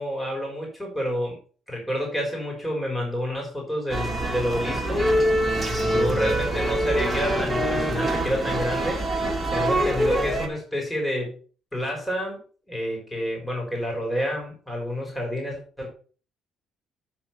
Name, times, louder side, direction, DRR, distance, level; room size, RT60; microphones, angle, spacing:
voice 1, 0.0-1.4 1.7-5.1 5.8-9.0 9.5-11.4 11.7-12.4 12.7-15.9, equal, 10° left, 0 dB, 4.1 m, -29 dB
sound 1, 3.9-10.5, right 1 dB, 5° right, 2.5 m, -24 dB
8.8 x 6.0 x 5.7 m, 0.40 s
cardioid pair, 105°, 0 cm